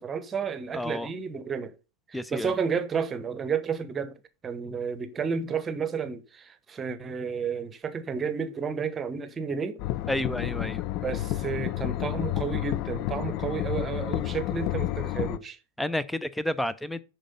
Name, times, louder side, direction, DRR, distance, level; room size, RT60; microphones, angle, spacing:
voice 1, 0.0-1.7 2.1-4.1 4.4-9.8 11.0-15.6, right 6 dB, 20° right, 1.2 m, -31 dB
voice 2, 0.7-1.1 2.1-2.5 10.1-10.8 15.8-17.0, left 1 dB, 5° left, 0.7 m, -30 dB
sound 1, 9.8-15.4, left 14 dB, 40° left, 0.5 m, -30 dB
10.0 x 4.8 x 5.3 m
figure-of-eight pair, 90°, 0 cm